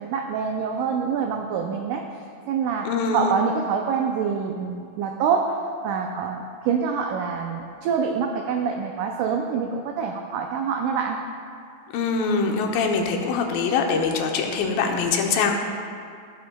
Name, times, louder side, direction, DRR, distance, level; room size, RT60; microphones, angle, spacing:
voice 1, 0.0-2.1 2.5-11.2, right 6 dB, 80° right, 3 dB, 1.8 m, -26 dB
voice 2, 2.8-3.3 11.9-15.5, left 5 dB, 90° left, 2 dB, 2.4 m, -23 dB
14.5 x 7.8 x 2.2 m, 2.3 s
omnidirectional pair, 4.1 m